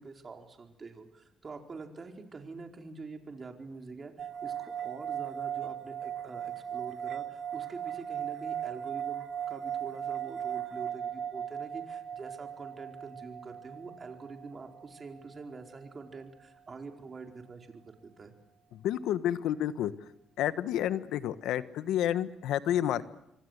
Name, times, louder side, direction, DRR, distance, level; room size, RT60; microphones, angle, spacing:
voice 1, 0.0-18.3, right 4 dB, 35° right, 3 dB, 4.5 m, -46 dB
sound 1, 4.2-15.5, right 9 dB, 60° right, 1.3 m, -38 dB
voice 2, 18.7-19.9 20.4-23.0, left 11 dB, 85° left, 13 dB, 1.3 m, -30 dB
26.5 x 24.5 x 8.2 m, 0.83 s
cardioid pair, 90°, 0 cm